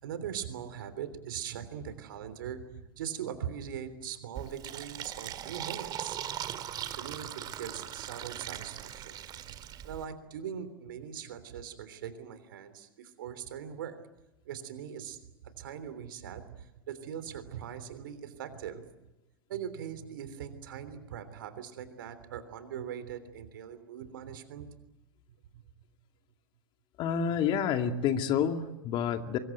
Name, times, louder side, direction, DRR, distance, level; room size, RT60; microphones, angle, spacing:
voice 1, 0.0-6.2 6.9-9.6 9.8-14.0 14.4-15.2 15.5-18.8 19.5-24.7 25.5-25.6, right 9 dB, 70° right, 11 dB, 3.3 m, -41 dB
Fill (with liquid), 4.3-10.0, right 10 dB, 35° right, 2.0 m, -40 dB
voice 2, 27.0-29.4, left 8 dB, 45° left, 6 dB, 2.3 m, -28 dB
24.0 x 22.5 x 9.2 m, 0.97 s
hypercardioid pair, 90°, 12 cm